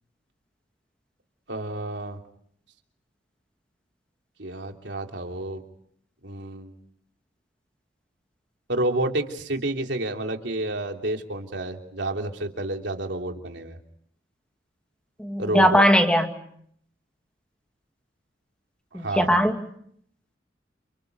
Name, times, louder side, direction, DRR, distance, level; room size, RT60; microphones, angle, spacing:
voice 1, 1.5-2.2 4.4-5.6 6.2-6.7 8.7-13.8 15.4-15.8 18.9-19.3, right 1 dB, 75° right, 4 dB, 3.1 m, -30 dB
voice 2, 15.2-16.3 18.9-19.6, equal, 5° left, 5 dB, 2.3 m, -19 dB
29.5 x 29.0 x 5.3 m, 0.67 s
head